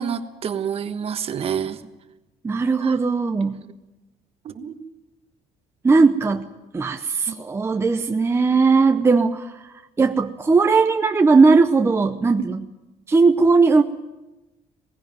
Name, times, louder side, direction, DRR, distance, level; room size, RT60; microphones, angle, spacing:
voice 1, 0.0-1.8 2.8-3.0 4.4-4.8 7.3-7.4 12.4-12.5, right 7 dB, 45° right, 10 dB, 1.3 m, -28 dB
voice 2, 2.4-3.6 5.8-6.5 6.7-12.7 13.1-13.8, right 4 dB, 20° right, 7 dB, 0.7 m, -18 dB
19.0 x 16.0 x 9.3 m, 1.1 s
cardioid pair, 135°, 14 cm